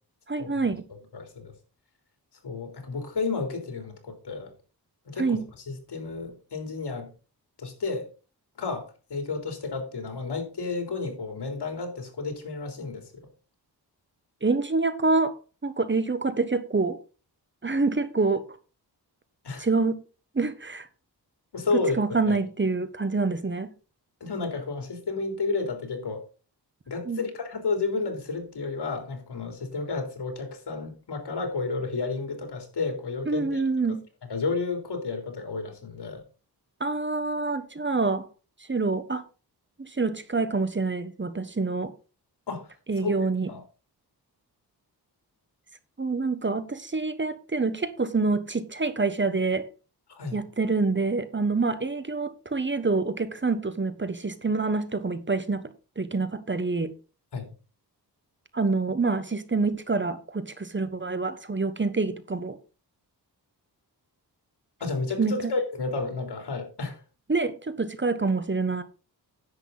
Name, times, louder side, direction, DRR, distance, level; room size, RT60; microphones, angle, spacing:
voice 1, 0.3-0.8 5.2-5.4 14.4-15.3 15.6-17.0 17.6-18.5 19.6-20.0 20.3-20.9 21.7-23.7 27.1-27.2 33.3-34.0 36.8-38.3 38.7-39.2 39.8-41.9 42.9-43.5 46.0-49.7 50.3-55.6 56.0-56.9 58.5-62.6 65.2-65.5 67.3-68.8, right 3 dB, 30° right, 1.2 m, -26 dB
voice 2, 1.1-1.5 2.4-4.5 5.1-5.4 5.7-7.1 7.6-8.1 8.6-13.1 19.4-19.7 21.5-22.0 22.3-22.4 24.2-26.2 26.9-33.6 34.3-36.2 42.5-43.1 43.5-43.6 50.1-50.4 57.3-57.5 64.8-67.0, left 4 dB, 75° left, 3.5 m, -31 dB
10.5 x 8.0 x 4.0 m
cardioid pair, 75°, 40 cm